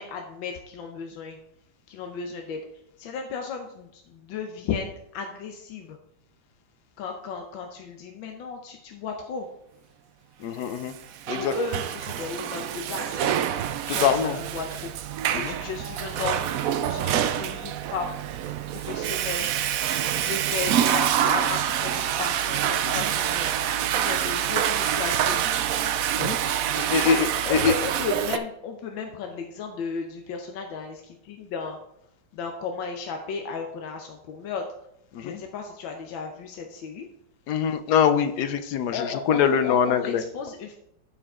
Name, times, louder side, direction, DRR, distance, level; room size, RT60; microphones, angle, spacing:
voice 1, 0.0-1.4 1.9-2.6 3.0-6.0 7.0-9.5 11.3-13.4 13.9-14.9 15.3-16.5 16.8-18.1 18.7-19.5 20.1-25.4 27.0-27.2 27.4-31.8 32.3-34.7 35.2-37.1 38.9-40.8, left 5 dB, 85° left, 3 dB, 1.6 m, -34 dB
voice 2, 10.4-10.9 11.3-11.5 13.9-14.4 15.3-15.6 22.8-23.0 26.2-26.4 26.7-27.7 35.1-35.4 37.5-40.2, left 7 dB, 65° left, 10 dB, 1.2 m, -24 dB
Water / Toilet flush, 10.9-28.4, right 10 dB, 80° right, 0.7 m, -26 dB
13.0 x 4.9 x 3.7 m, 0.74 s
omnidirectional pair, 2.1 m